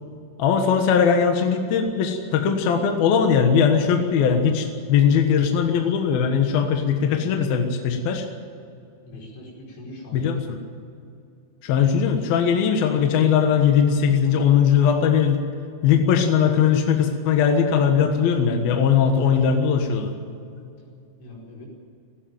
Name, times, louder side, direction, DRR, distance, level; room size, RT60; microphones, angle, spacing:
voice 1, 0.4-8.3 9.1-9.2 10.1-10.6 11.6-15.4 15.8-20.2, left 7 dB, 65° left, 4 dB, 2.9 m, -20 dB
voice 2, 9.0-10.3 21.2-21.7, left 1 dB, 80° left, -2 dB, 7.5 m, -41 dB
18.5 x 16.5 x 9.3 m, 2.5 s
omnidirectional pair, 5.3 m